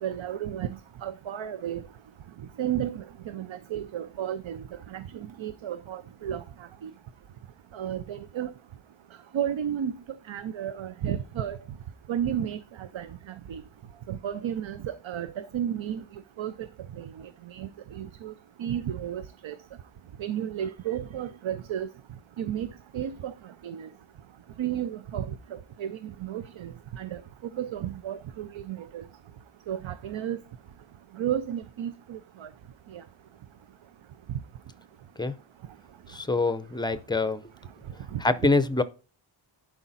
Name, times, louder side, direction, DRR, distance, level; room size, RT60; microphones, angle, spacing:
voice 1, 0.0-1.8 2.6-6.4 6.8-6.9 7.7-8.5 9.3-9.9 10.3-11.6 12.1-13.6 14.1-16.0 16.4-16.7 17.0-17.1 17.5-18.3 18.6-19.6 20.2-21.9 22.4-22.7 22.9-23.3 23.6-23.9 24.6-25.4 25.8-27.2 27.5-29.0 29.7-30.4 31.1-32.5 32.9-33.0 38.1-38.2, right 10 dB, 75° right, 0.7 m, -33 dB
voice 2, 36.1-37.4 38.2-38.8, left 3 dB, 10° left, 0.5 m, -25 dB
11.5 x 5.0 x 4.0 m
wide cardioid pair, 175°, 48 cm